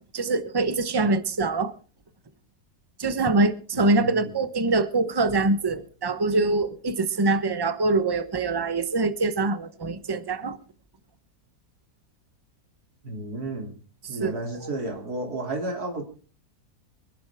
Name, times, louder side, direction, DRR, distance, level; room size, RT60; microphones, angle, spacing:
voice 1, 0.1-1.7 3.0-10.6 14.2-14.3 14.6-14.7, right 3 dB, 20° right, 0.9 m, -24 dB
voice 2, 3.7-4.3 13.0-13.7 14.1-16.0, right 2 dB, 70° right, 3.5 m, -32 dB
24.5 x 11.5 x 3.5 m
omnidirectional pair, 1.7 m